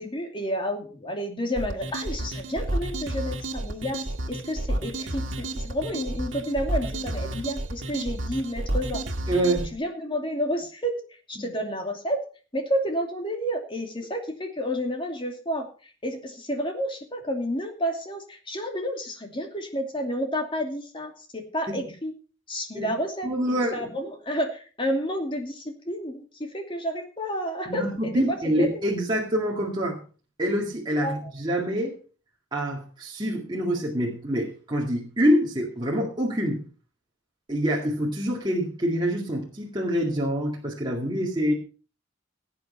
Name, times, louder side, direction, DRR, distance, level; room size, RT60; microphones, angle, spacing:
voice 1, 0.0-4.0 4.3-9.0 9.7-11.0 11.3-12.2 12.5-15.7 16.0-22.1 22.5-26.2 26.5-28.8 31.0-31.3, equal, 25° left, 3 dB, 2.7 m, -30 dB
sound 1, 1.5-9.7, right 1 dB, 80° right, 1.7 m, -31 dB
voice 2, 9.3-9.7 11.4-11.5 21.7-21.9 22.7-22.9 23.2-23.9 27.7-30.0 30.4-32.0 32.5-36.6 37.5-41.5, equal, 25° right, -3 dB, 2.1 m, -26 dB
17.5 x 8.7 x 4.4 m, 0.38 s
head